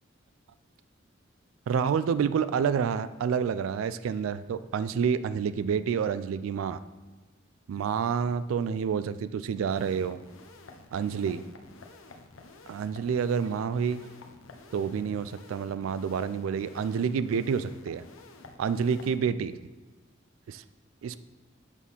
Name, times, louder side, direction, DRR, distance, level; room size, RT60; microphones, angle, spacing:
voice 1, 1.7-6.8 7.7-10.2 10.9-11.4 12.7-14.1 14.7-18.0 18.6-19.6 20.5-20.6 21.0-21.2, right 6 dB, 85° right, 14 dB, 0.3 m, -28 dB
sound 1, 9.7-19.2, left 3 dB, 90° left, 0.7 m, -51 dB
7.2 x 4.2 x 5.4 m, 1.3 s
head